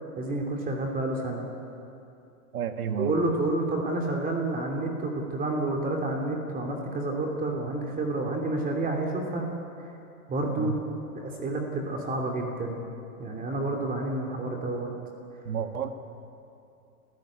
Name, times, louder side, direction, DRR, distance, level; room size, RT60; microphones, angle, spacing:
voice 1, 0.1-1.5 3.0-9.5 10.3-10.7 11.1-12.8 13.2-14.9, right 2 dB, 20° right, 1 dB, 3.0 m, -29 dB
voice 2, 2.5-3.1 10.6-10.8 15.5-15.9, right 8 dB, 75° right, 8 dB, 1.9 m, -30 dB
29.5 x 15.0 x 8.8 m, 2.7 s
hypercardioid pair, 115°, 45 cm